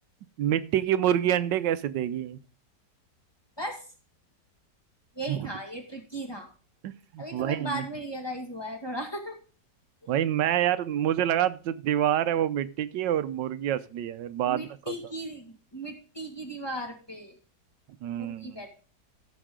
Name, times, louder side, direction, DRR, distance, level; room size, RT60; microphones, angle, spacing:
voice 1, 0.4-2.4 5.3-5.5 6.8-7.8 10.1-14.6 18.0-18.6, right 11 dB, 85° right, 14 dB, 1.3 m, -27 dB
voice 2, 3.6-3.9 5.1-6.5 7.2-9.4 10.0-10.1 14.4-17.4 18.1-18.8, right 1 dB, 15° left, 2 dB, 1.9 m, -37 dB
15.0 x 6.4 x 3.7 m, 0.37 s
omnidirectional pair, 1.9 m